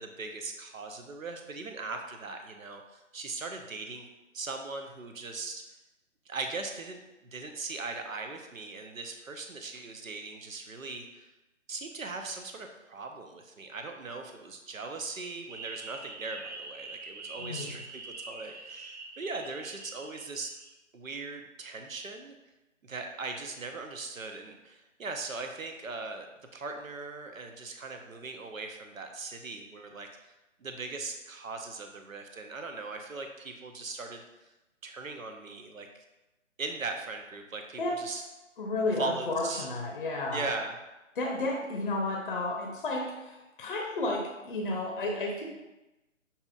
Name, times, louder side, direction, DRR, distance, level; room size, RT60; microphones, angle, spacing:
voice 1, 0.0-4.1 4.3-5.6 6.3-7.0 7.3-11.3 11.7-20.5 20.9-22.3 22.8-30.1 30.6-34.2 34.8-35.9 36.6-38.2 39.0-39.7 40.3-40.7, right 3 dB, 90° right, 4 dB, 0.8 m, -39 dB
sound 1, 15.5-20.7, right 3 dB, 55° right, 0.6 m, -44 dB
voice 2, 17.4-17.8 37.8-38.2 38.6-40.5 41.2-45.4, left 2 dB, 40° left, 1 dB, 0.6 m, -32 dB
6.7 x 2.9 x 2.4 m, 1.0 s
figure-of-eight pair, 150°, 39 cm